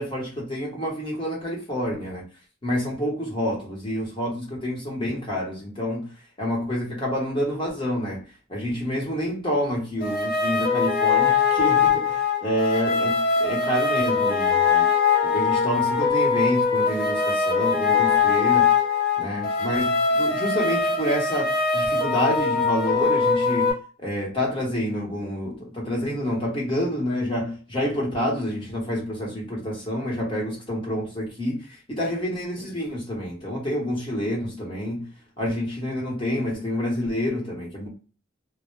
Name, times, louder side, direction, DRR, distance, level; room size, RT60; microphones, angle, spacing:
voice 1, 0.0-2.3 2.6-6.1 6.4-8.2 8.5-14.9 15.2-18.7 19.2-31.6 31.9-35.1 35.4-37.9, equal, 25° left, 0.9 m, -28 dB
sound 1, 10.0-23.7, left 5 dB, 50° left, 0.8 m, -22 dB
2.1 x 2.1 x 3.0 m
head